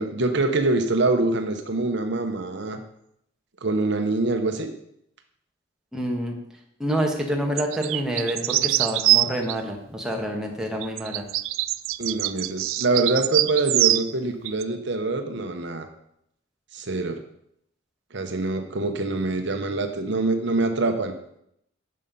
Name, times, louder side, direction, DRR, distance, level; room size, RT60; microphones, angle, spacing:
voice 1, 0.0-2.8 3.6-4.7 12.0-15.9 16.7-17.2 18.1-21.1, right 2 dB, 60° right, 6 dB, 0.9 m, -25 dB
voice 2, 5.9-6.3 6.8-11.2, equal, 5° right, 0 dB, 1.4 m, -27 dB
sound 1, 7.6-9.6 10.8-14.1 14.5-14.6, right 16 dB, 85° right, 0.4 m, -23 dB
9.8 x 6.5 x 5.4 m, 0.76 s
head